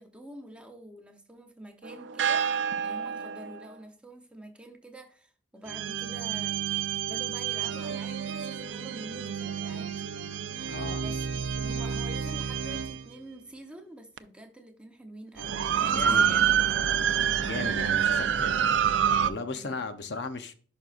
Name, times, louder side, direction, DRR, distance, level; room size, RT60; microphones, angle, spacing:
voice 1, 0.0-2.5 2.8-6.6 7.1-10.2 11.0-16.5 17.5-17.9 19.5-19.8, right 1 dB, 5° right, 0.9 m, -46 dB
sound 1, 1.8-3.7 5.7-13.0 14.2-14.3 15.4-19.3, right 8 dB, 85° right, 0.4 m, -28 dB
voice 2, 10.7-11.0 15.8-16.5 17.4-18.7 19.2-20.5, left 3 dB, 65° left, 0.7 m, -36 dB
11.0 x 5.4 x 2.5 m
head